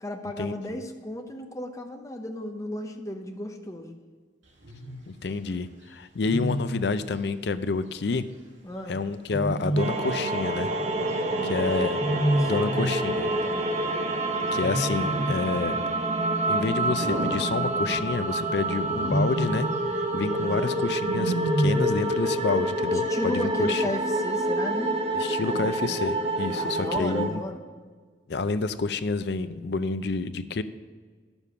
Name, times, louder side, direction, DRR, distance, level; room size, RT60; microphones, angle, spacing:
voice 1, 0.0-4.0 8.6-9.0 11.1-13.8 20.3-20.7 22.9-24.9 25.4-25.7 26.5-27.6, left 1 dB, 15° left, 4 dB, 0.8 m, -35 dB
Wild animals, 4.6-5.0 6.2-6.9 9.3-10.2 11.9-13.0 14.5-15.5 17.0-18.1 18.8-19.7 21.0-22.0, right 1 dB, 85° right, 2.4 m, -28 dB
voice 2, 5.1-8.2 8.9-10.7 11.4-12.0 12.5-13.3 14.5-15.8 16.5-19.7 19.9-23.8 25.2-27.4 28.3-30.6, left 4 dB, 60° left, 12 dB, 0.5 m, -28 dB
sound 1, 9.8-27.3, right 1 dB, 35° right, 0.9 m, -27 dB
9.8 x 7.1 x 5.7 m, 1.5 s
head